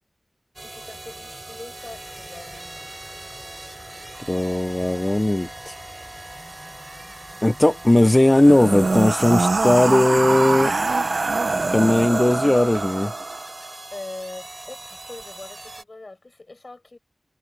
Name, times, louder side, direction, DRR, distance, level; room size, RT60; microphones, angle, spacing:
voice 1, 0.6-3.0 13.9-17.0, left 2 dB, 65° left, 6.3 m, -41 dB
sound 1, 0.6-15.8, right 2 dB, 55° right, 7.2 m, -41 dB
sound 2, 1.8-11.1, left 2 dB, 45° left, 5.3 m, -49 dB
voice 2, 4.3-5.8 7.4-10.7 11.7-13.1, left 1 dB, 30° left, 1.0 m, -18 dB
sound 3, 8.3-13.6, right 3 dB, 90° right, 0.9 m, -24 dB
wide cardioid pair, 45°, 0 cm